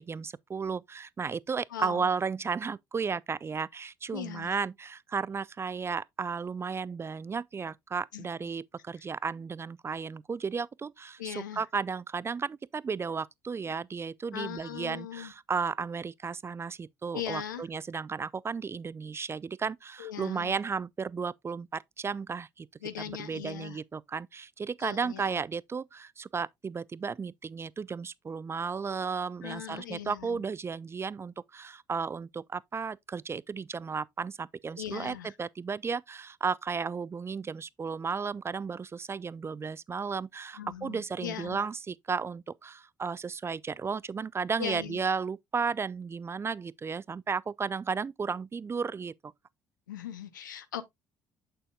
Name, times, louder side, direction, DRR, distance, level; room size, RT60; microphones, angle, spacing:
voice 1, 0.0-22.7 23.2-49.3, right 5 dB, 25° right, 0.3 m, -34 dB
voice 2, 1.7-2.1 4.1-4.5 8.1-8.3 11.2-11.7 14.3-15.3 17.1-17.7 20.0-20.5 22.8-23.8 24.8-25.3 29.4-30.4 34.8-35.4 40.5-41.6 44.6-45.0 49.9-50.8, left 10 dB, 85° left, 0.8 m, -39 dB
7.6 x 6.8 x 2.2 m
hypercardioid pair, 55°, 10 cm